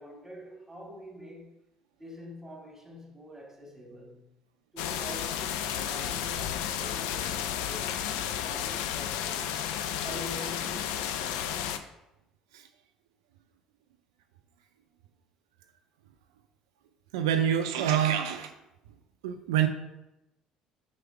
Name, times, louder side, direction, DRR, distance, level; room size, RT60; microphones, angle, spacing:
voice 1, 0.0-1.6 2.0-4.2 4.7-9.8 10.0-11.0, left 1 dB, 10° right, 0 dB, 2.5 m, -45 dB
sound 1, 4.8-11.8, left 10 dB, 75° left, 0.4 m, -32 dB
voice 2, 17.1-18.5 19.2-19.7, right 9 dB, 85° right, 7 dB, 0.4 m, -26 dB
4.9 x 4.5 x 5.9 m, 0.92 s
hypercardioid pair, 60°, 3 cm